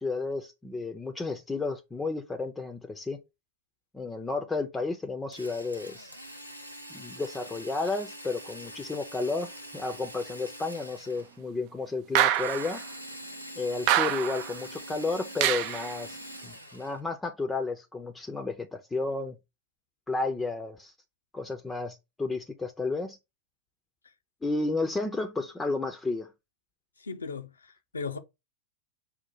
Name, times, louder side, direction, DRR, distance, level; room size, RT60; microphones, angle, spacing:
voice 1, 0.0-3.2 3.9-6.1 6.9-12.8 13.6-16.2 16.4-19.4 20.1-20.9 21.3-23.2 24.4-26.3, left 3 dB, 10° left, 0.5 m, -32 dB
Drill, 5.3-11.4 12.3-17.0, equal, 90° right, 0.6 m, -44 dB
sound 1, 12.1-12.8 13.9-14.5 15.4-15.9, right 12 dB, 45° right, 0.3 m, -25 dB
voice 2, 27.0-28.2, left 5 dB, 75° left, 0.6 m, -37 dB
5.5 x 2.2 x 4.4 m
figure-of-eight pair, 90°, 0 cm